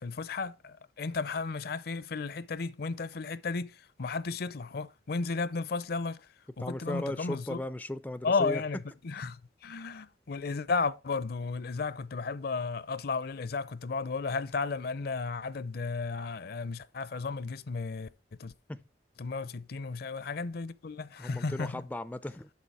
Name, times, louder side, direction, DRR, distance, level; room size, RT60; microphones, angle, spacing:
voice 1, 0.0-6.3 6.6-7.6 8.2-18.1 18.4-18.5 19.2-21.8, left 4 dB, 60° left, 0.5 m, -34 dB
voice 2, 6.6-8.6 18.7-18.8 21.2-22.5, left 1 dB, 10° left, 0.3 m, -36 dB
8.4 x 6.0 x 4.7 m
head